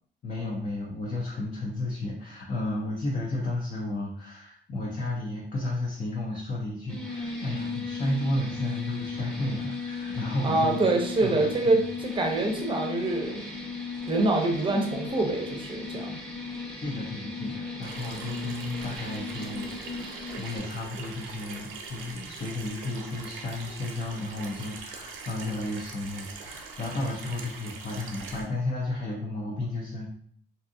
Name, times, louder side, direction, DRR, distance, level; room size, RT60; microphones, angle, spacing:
voice 1, 0.2-10.8 11.2-11.9 16.8-30.2, left 1 dB, 40° left, -3 dB, 0.6 m, -33 dB
sound 1, 6.9-20.6, left 4 dB, 5° left, 0.9 m, -36 dB
voice 2, 10.4-13.4 14.1-16.2, right 2 dB, 25° right, 2 dB, 0.6 m, -25 dB
Water tap faucet / Sink (filling or washing), 17.8-28.5, right 4 dB, 90° right, 0.5 m, -42 dB
2.6 x 2.3 x 2.6 m, 0.62 s
cardioid pair, 90°, 20 cm